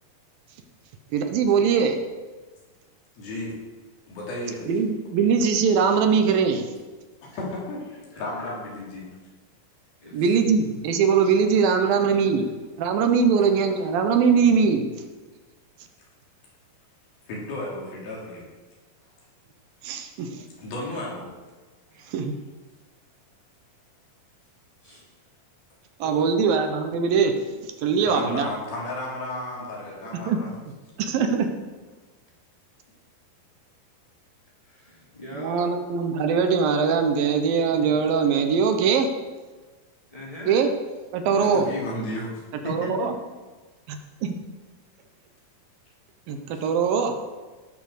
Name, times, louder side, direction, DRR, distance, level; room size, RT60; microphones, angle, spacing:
voice 1, 1.1-2.0 4.7-6.7 10.1-12.5 12.8-14.9 19.8-20.3 22.1-22.3 26.0-27.3 27.8-28.5 30.3-30.4 31.0-31.5 35.3-39.1 40.5-40.7 41.1-41.7 42.7-43.1 43.9-44.3 46.3-47.1, right 6 dB, 75° right, 6 dB, 2.7 m, -21 dB
voice 2, 3.2-3.5 4.1-4.7 7.2-9.1 10.2-10.3 13.4-13.5 17.3-18.5 20.6-21.3 22.0-22.1 28.0-30.5 41.3-42.3 42.6-43.1, left 1 dB, 75° left, -4 dB, 5.2 m, -33 dB
voice 3, 26.0-26.4 28.0-28.1 34.6-35.7 40.1-40.7 41.2-41.7 46.5-46.7, left 1 dB, 10° left, -6 dB, 3.4 m, -41 dB
17.5 x 6.4 x 6.4 m, 1.3 s
omnidirectional pair, 4.3 m